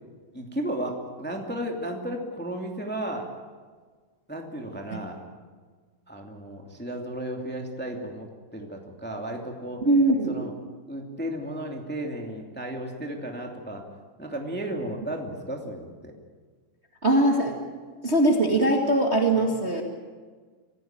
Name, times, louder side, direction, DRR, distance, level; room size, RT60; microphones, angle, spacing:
voice 1, 0.3-3.3 4.3-5.2 6.1-9.9 10.3-10.5 10.9-13.9 14.2-16.1, right 1 dB, 5° left, 1 dB, 1.1 m, -34 dB
voice 2, 9.8-10.3 17.0-17.6 18.0-19.8, right 1 dB, 60° right, 1 dB, 0.6 m, -21 dB
26.5 x 16.0 x 9.1 m, 1.5 s
omnidirectional pair, 5.2 m